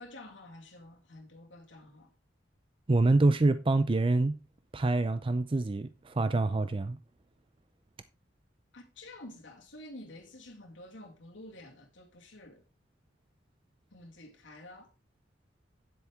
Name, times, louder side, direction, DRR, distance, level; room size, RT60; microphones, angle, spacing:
voice 1, 0.0-2.1 8.7-12.6 13.9-14.9, left 1 dB, 85° left, 2.1 m, -49 dB
voice 2, 2.9-4.4 4.7-7.0, right 2 dB, 30° right, 0.5 m, -26 dB
10.0 x 8.0 x 3.5 m
head